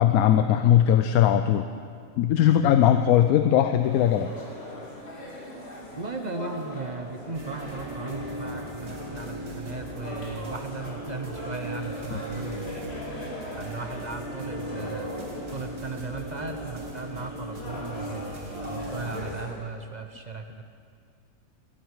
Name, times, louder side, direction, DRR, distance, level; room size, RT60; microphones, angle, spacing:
voice 1, 0.0-1.7 2.2-4.3 12.1-12.2, left 10 dB, 75° left, 8 dB, 1.0 m, -20 dB
sound 1, 3.8-19.6, left 1 dB, 40° left, 2.6 m, -40 dB
voice 2, 6.0-12.8 13.6-15.1 15.5-20.6, right 4 dB, 35° right, 6 dB, 0.8 m, -37 dB
sound 2, 7.3-19.3, right 1 dB, 65° right, 2.1 m, -38 dB
19.5 x 12.5 x 4.7 m, 2.2 s
omnidirectional pair, 1.6 m